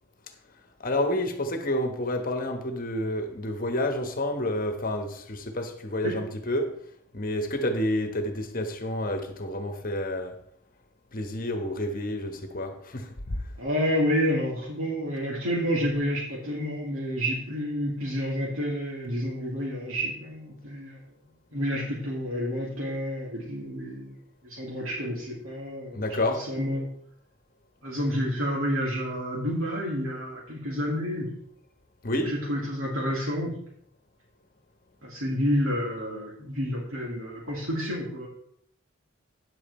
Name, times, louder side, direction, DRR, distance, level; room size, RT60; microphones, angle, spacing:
voice 1, 0.8-6.7 7.1-10.4 11.1-13.2 25.9-26.5 32.0-32.3, left 1 dB, 40° left, 1.2 m, -29 dB
voice 2, 13.6-21.0 21.5-24.1 24.4-26.9 27.8-31.3 32.1-33.5 35.0-38.3, equal, 85° right, 2.9 m, -29 dB
9.8 x 7.5 x 4.3 m
head